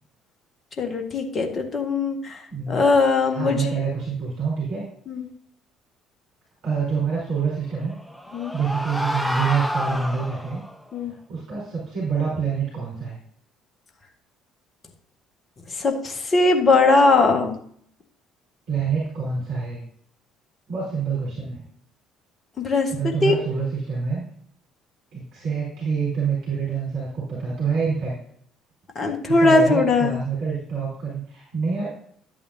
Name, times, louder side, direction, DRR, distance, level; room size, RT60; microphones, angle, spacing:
voice 1, 0.8-2.4 2.7-3.7 5.1-5.2 8.3-8.5 10.9-11.1 15.7-17.6 22.6-23.3 28.9-30.2, left 3 dB, 35° left, 4 dB, 1.6 m, -20 dB
voice 2, 2.5-2.8 3.3-4.9 6.6-7.9 8.5-10.6 11.1-13.2 18.7-19.8 20.7-21.6 22.9-24.3 25.1-28.1 29.2-31.9, right 5 dB, 55° right, -6 dB, 4.4 m, -26 dB
sound 1, 7.8-10.8, equal, ahead, 0.8 m, -29 dB
12.5 x 8.5 x 2.8 m, 0.64 s
figure-of-eight pair, 50°, 0 cm